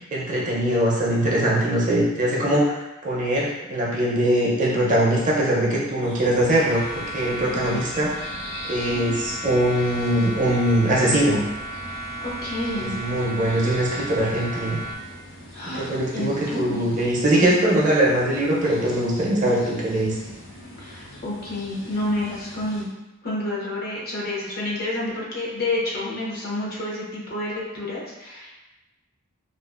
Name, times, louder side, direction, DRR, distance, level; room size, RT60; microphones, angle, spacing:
voice 1, 0.0-8.1 8.7-11.4 12.7-14.8 15.8-20.2, right 1 dB, 40° right, -5 dB, 0.6 m, -22 dB
sound 1, 6.0-22.8, equal, 75° left, 1.1 m, -42 dB
sound 2, 6.7-14.9, right 1 dB, 5° left, 0.5 m, -35 dB
voice 2, 12.2-13.0 15.5-16.9 20.8-22.9 23.2-28.5, left 1 dB, 50° left, -5 dB, 0.7 m, -29 dB
2.5 x 2.4 x 2.4 m, 1.0 s
head